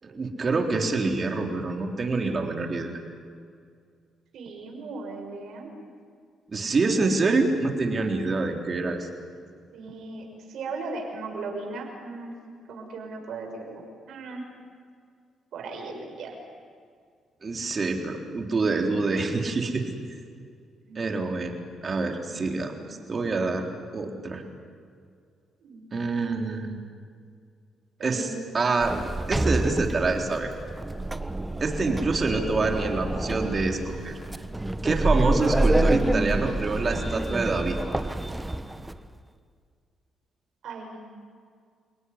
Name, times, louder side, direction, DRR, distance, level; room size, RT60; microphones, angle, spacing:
voice 1, 0.0-3.0 6.5-9.1 17.4-19.9 21.0-23.7 23.9-24.4 25.9-26.8 28.0-28.3 28.5-28.9 29.3-30.5 31.6-34.1 34.8-37.8, right 3 dB, 35° right, 3 dB, 3.8 m, -26 dB
voice 2, 4.3-5.7 6.9-7.0 9.7-12.4 12.7-14.5 15.5-16.4 20.8-21.2 22.2-23.0 25.6-26.3 26.6-26.7 28.0-28.7 40.6-41.1, right 3 dB, 70° right, 2 dB, 6.3 m, -38 dB
Sliding door, 28.8-39.0, right 1 dB, 10° right, 1.1 m, -27 dB
28.5 x 18.0 x 9.8 m, 2.1 s
cardioid pair, 90°, 0 cm